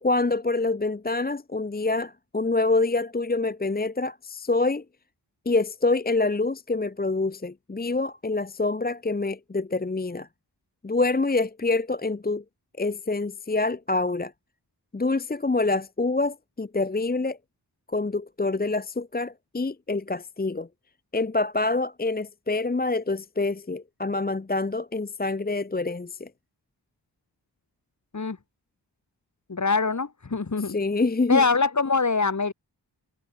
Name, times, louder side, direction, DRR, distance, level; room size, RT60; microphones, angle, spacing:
voice 1, 0.0-4.8 5.5-10.3 10.8-12.4 12.8-14.3 14.9-17.4 17.9-20.7 21.1-26.3 30.7-31.4, left 3 dB, 20° left, 0.8 m, -26 dB
voice 2, 29.5-30.8 31.3-32.5, left 4 dB, 40° left, 2.1 m, -23 dB
wide cardioid pair, 70°, 43 cm